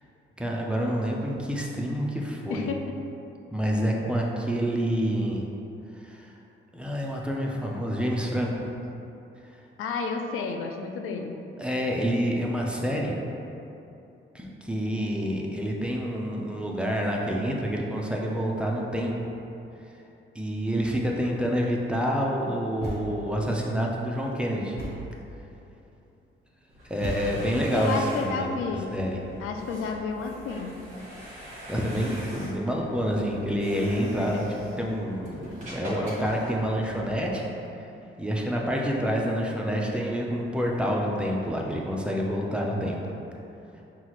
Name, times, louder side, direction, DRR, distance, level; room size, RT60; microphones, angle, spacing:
voice 1, 0.4-2.7 3.5-5.4 5.9-6.3 6.7-8.6 11.6-13.1 14.3-19.1 20.4-24.8 26.9-28.6 28.9-29.2 31.7-34.4 34.8-37.4 38.2-43.0, equal, 5° right, -2 dB, 0.4 m, -28 dB
voice 2, 9.8-11.4 27.7-29.0 29.4-30.8 34.2-34.5, left 4 dB, 85° left, 4 dB, 0.4 m, -31 dB
Thump thud, 22.8-23.4 24.8-25.2 27.0-27.7, right 1 dB, 50° left, 1.2 m, -35 dB
sound 1, 26.7-37.3, equal, 35° right, 1.2 m, -42 dB
5.8 x 2.4 x 3.0 m, 2.8 s
cardioid pair, 120°, 21 cm